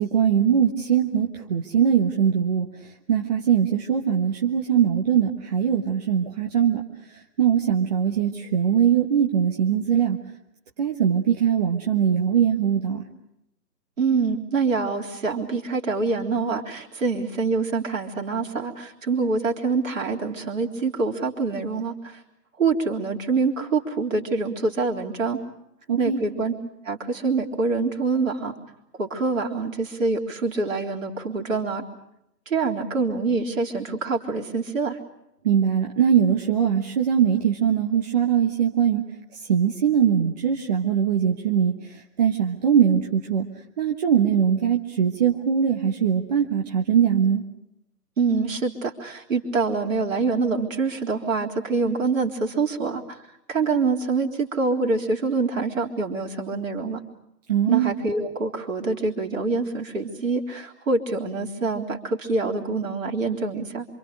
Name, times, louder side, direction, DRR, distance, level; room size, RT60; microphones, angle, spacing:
voice 1, 0.0-2.7 3.1-6.8 7.4-10.2 10.8-13.0 25.9-26.2 35.4-39.0 39.5-41.7 42.2-43.4 43.8-47.4 57.5-57.9, right 8 dB, 25° right, 1 dB, 1.3 m, -21 dB
voice 2, 14.0-22.2 22.6-25.4 26.0-26.6 26.8-28.6 29.0-31.8 32.5-35.0 48.2-53.2 53.5-57.0 57.7-63.9, right 4 dB, 50° right, 1 dB, 3.7 m, -25 dB
27.5 x 26.0 x 6.6 m, 0.83 s
figure-of-eight pair, 140°, 49 cm